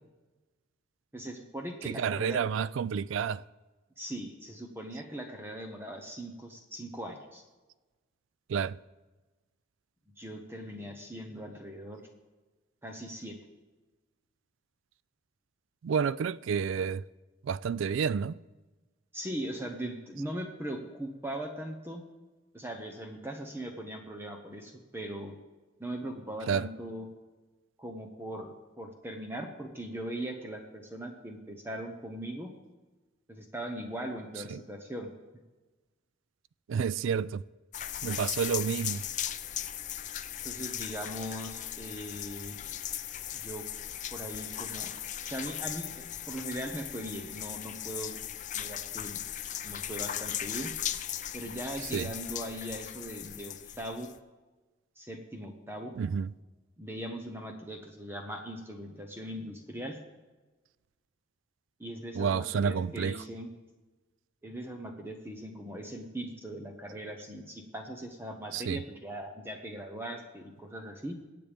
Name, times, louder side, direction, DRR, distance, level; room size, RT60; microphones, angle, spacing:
voice 1, 1.1-2.4 4.0-7.4 10.2-12.1 12.8-13.4 19.1-22.0 22.5-25.3 25.8-27.1 27.8-32.5 33.3-35.1 40.4-42.6 43.3-43.6 44.1-44.9 45.2-48.2 48.5-49.2 49.6-50.7 51.3-54.1 55.0-55.9 56.8-60.0 61.8-63.5 64.4-71.2, right 1 dB, 10° right, 0.9 m, -40 dB
voice 2, 1.8-3.4 8.5-8.8 15.8-17.0 17.4-18.4 26.5-26.7 34.5-34.6 36.7-37.4 38.0-39.0 51.9-52.1 56.0-56.3 62.1-63.2 68.5-68.8, right 6 dB, 70° right, 0.3 m, -30 dB
sound 1, 37.7-54.2, left 11 dB, 40° left, 0.5 m, -38 dB
23.0 x 8.6 x 3.5 m
head